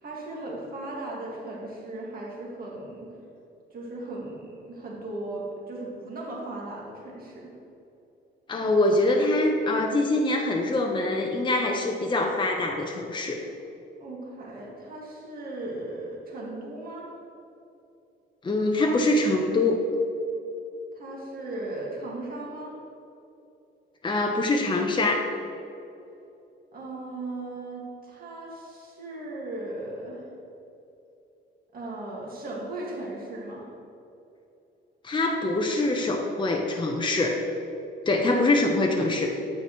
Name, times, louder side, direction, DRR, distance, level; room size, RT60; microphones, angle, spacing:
voice 1, 0.0-3.1 3.7-7.5 14.0-17.1 20.9-22.7 26.7-30.3 31.7-33.7 38.1-38.3, right 2 dB, 45° right, -3 dB, 1.9 m, -37 dB
voice 2, 8.5-13.4 18.4-19.8 24.0-25.2 35.0-37.4 38.1-39.3, left 2 dB, 25° left, 1 dB, 0.8 m, -24 dB
9.1 x 7.6 x 3.1 m, 2.8 s
cardioid pair, 90°, 20 cm